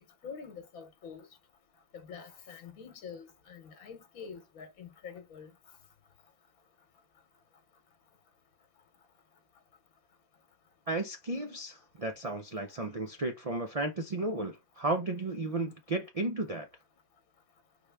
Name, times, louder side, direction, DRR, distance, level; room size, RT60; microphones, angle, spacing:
voice 1, 0.2-1.3 2.1-5.5, left 6 dB, 75° left, 1.4 m, -46 dB
voice 2, 10.9-16.7, right 2 dB, 65° right, 0.3 m, -34 dB
4.7 x 3.2 x 3.4 m
omnidirectional pair, 1.5 m